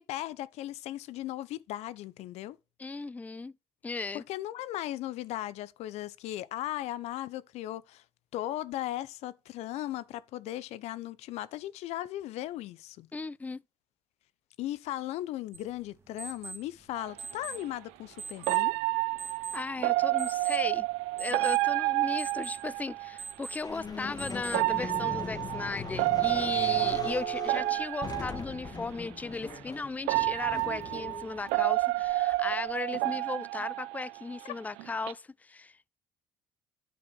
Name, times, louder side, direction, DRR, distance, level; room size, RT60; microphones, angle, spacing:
voice 1, 0.0-2.6 4.1-8.0 8.3-13.1 14.6-18.7, left 14 dB, 70° left, 0.6 m, -37 dB
voice 2, 2.8-3.5 3.8-4.2 13.1-13.6 19.5-20.9 21.2-35.8, left 3 dB, 15° left, 0.4 m, -36 dB
sound 1, 15.5-24.9, right 4 dB, 20° right, 2.2 m, -46 dB
sound 2, 17.0-17.1 18.5-23.2 24.5-28.7 29.5-29.6 30.1-34.5 34.8-35.1, right 22 dB, 80° right, 0.4 m, -29 dB
sound 3, 23.6-32.7, left 5 dB, 35° left, 1.3 m, -41 dB
10.0 x 4.9 x 4.7 m
supercardioid pair, 70°, 11 cm